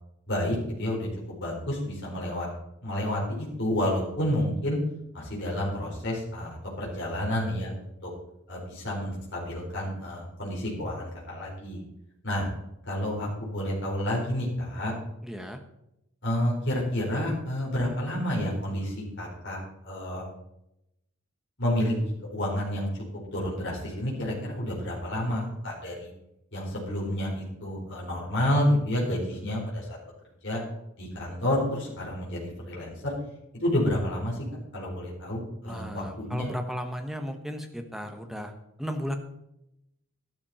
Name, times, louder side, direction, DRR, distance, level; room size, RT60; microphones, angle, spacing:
voice 1, 0.3-1.1 1.4-2.5 2.8-4.8 5.1-7.7 8.0-8.1 8.5-11.8 12.2-12.5 12.9-14.9 16.2-20.2 21.6-21.9 22.3-23.0 23.3-26.1 26.5-30.0 30.4-30.6 31.0-33.1 33.5-34.4 34.7-36.5, left 1 dB, 55° left, -3 dB, 4.5 m, -29 dB
voice 2, 15.2-15.6 35.6-38.5 38.8-39.2, equal, ahead, 5 dB, 1.2 m, -35 dB
12.0 x 12.0 x 4.4 m, 0.83 s
head